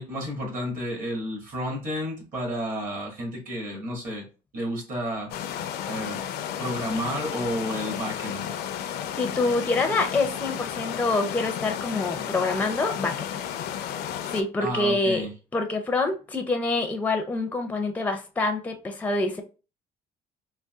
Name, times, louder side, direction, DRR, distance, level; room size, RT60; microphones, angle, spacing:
voice 1, 0.0-4.2 4.5-5.3 5.9-6.2 6.6-8.5 14.6-15.3, equal, 50° right, 1.6 m, -31 dB
sound 1, 5.3-14.4, left 9 dB, 75° left, 0.4 m, -33 dB
voice 2, 9.2-13.5 14.3-15.3 15.5-19.4, left 3 dB, 10° left, 0.5 m, -26 dB
3.7 x 2.2 x 2.3 m
cardioid pair, 110°, 17 cm